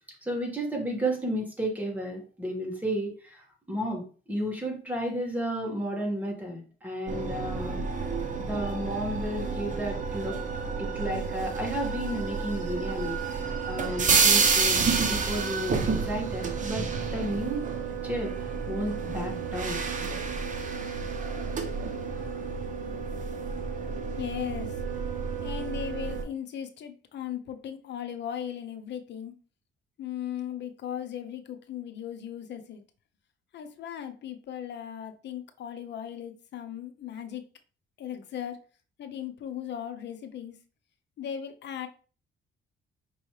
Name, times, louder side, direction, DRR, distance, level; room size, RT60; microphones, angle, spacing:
voice 1, 0.2-7.8 8.4-10.4 10.8-13.4 13.7-17.7 18.0-18.3 18.7-19.8, equal, 10° right, 1.8 m, -32 dB
sound 1, 7.1-26.2, right 5 dB, 40° right, 0.9 m, -30 dB
voice 2, 24.2-24.8 25.4-29.3 30.0-32.8 33.5-37.4 38.0-38.6 39.0-40.6 41.2-41.9, left 9 dB, 60° left, 0.7 m, -37 dB
5.3 x 3.1 x 3.2 m
cardioid pair, 90°, 20 cm